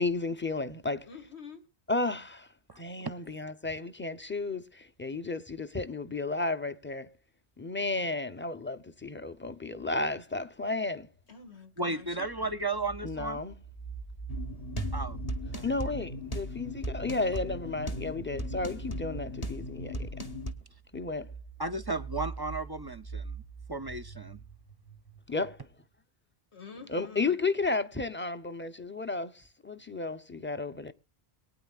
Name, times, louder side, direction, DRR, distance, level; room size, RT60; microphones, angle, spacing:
voice 1, 0.0-1.1 1.9-2.5 2.8-7.1 7.6-11.1 13.0-13.6 15.4-20.1 20.9-21.3 25.3-25.6 26.9-29.3 29.6-30.9, left 3 dB, 15° left, 0.6 m, -33 dB
voice 2, 1.1-1.6 11.3-12.5 26.5-27.4, left 5 dB, 90° left, 2.3 m, -48 dB
sound 1, 11.8-25.7, right 6 dB, 65° left, 1.6 m, -44 dB
voice 3, 11.8-13.4 14.9-15.2 15.5-15.6 16.0-16.1 21.6-23.4 23.7-24.4, right 2 dB, 30° right, 0.5 m, -34 dB
sound 2, 14.3-20.5, left 1 dB, 35° left, 1.3 m, -37 dB
23.0 x 9.1 x 2.4 m
omnidirectional pair, 1.1 m